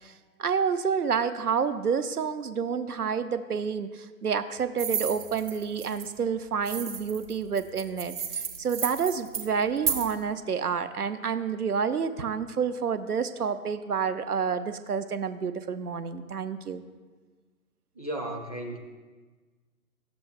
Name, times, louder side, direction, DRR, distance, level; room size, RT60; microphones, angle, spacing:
voice 1, 0.4-16.8, right 6 dB, 80° right, 11 dB, 0.7 m, -29 dB
sound 1, 4.8-6.1 6.6-10.1, right 7 dB, 40° right, 0.9 m, -33 dB
voice 2, 18.0-18.8, right 1 dB, 30° left, 0 dB, 0.4 m, -34 dB
13.5 x 6.9 x 2.3 m, 1.4 s
figure-of-eight pair, 135°, 45 cm